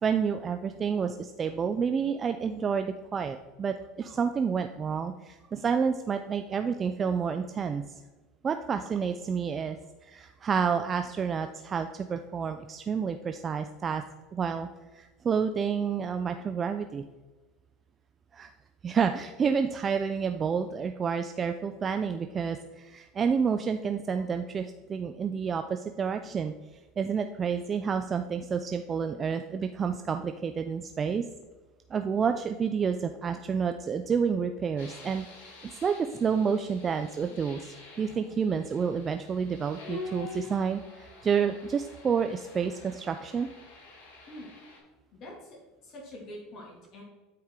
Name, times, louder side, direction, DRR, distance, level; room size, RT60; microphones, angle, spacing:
voice 1, 0.0-7.8 8.4-9.8 10.0-14.0 14.3-14.7 14.9-17.0 18.3-18.5 18.8-26.5 27.0-31.3 31.9-35.3 35.8-43.5, right 6 dB, 30° right, 7 dB, 0.4 m, -29 dB
sound 1, 34.8-44.8, left 4 dB, 80° left, 2.4 m, -47 dB
voice 2, 45.1-47.0, left 1 dB, 50° left, -3 dB, 2.3 m, -45 dB
8.7 x 4.7 x 3.7 m, 1.2 s
supercardioid pair, 100°, 0 cm